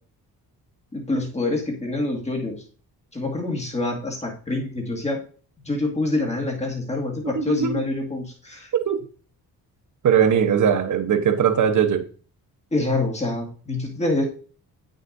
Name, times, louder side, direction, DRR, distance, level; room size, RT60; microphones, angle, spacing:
voice 1, 0.9-2.6 3.1-5.2 5.6-8.7 12.7-14.3, left 2 dB, 20° left, 2.2 m, -26 dB
voice 2, 7.3-7.9 8.7-9.0 10.0-12.1, right 8 dB, 55° right, 1.0 m, -20 dB
8.7 x 6.3 x 2.6 m
cardioid pair, 110°, 37 cm